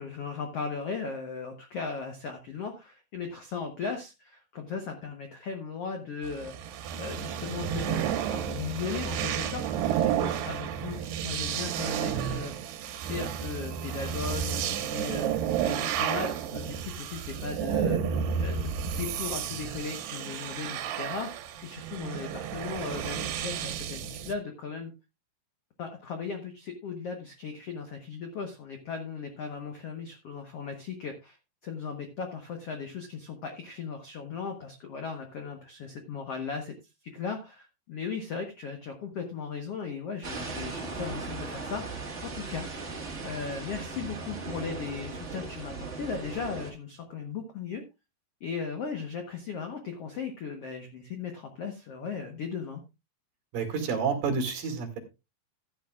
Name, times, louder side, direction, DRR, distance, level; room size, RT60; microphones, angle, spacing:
voice 1, 0.0-6.5 7.0-12.5 12.9-15.3 15.6-18.0 18.4-18.7 19.0-24.9 25.8-31.4 31.6-36.7 37.0-47.8 48.4-52.8, left 5 dB, 75° left, 5 dB, 1.4 m, -37 dB
sound 1, 6.2-24.3, right 8 dB, 85° right, 3.1 m, -31 dB
sound 2, 40.2-46.7, right 4 dB, 45° right, 0.9 m, -38 dB
voice 2, 53.5-55.0, right 5 dB, 60° right, 3 dB, 3.7 m, -29 dB
14.5 x 10.0 x 2.4 m, 0.26 s
omnidirectional pair, 4.6 m